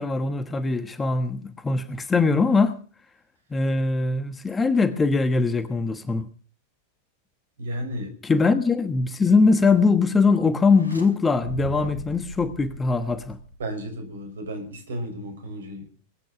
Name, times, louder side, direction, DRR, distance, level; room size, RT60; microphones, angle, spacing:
voice 1, 0.0-2.8 3.5-6.3 8.2-13.4, left 4 dB, 15° left, 1.3 m, -21 dB
voice 2, 7.6-8.1 13.6-15.9, equal, 65° right, 5.7 m, -33 dB
sound 1, 10.6-11.1 11.4-14.0, right 1 dB, 90° right, 2.7 m, -38 dB
21.5 x 9.3 x 5.8 m
figure-of-eight pair, 90°, 0 cm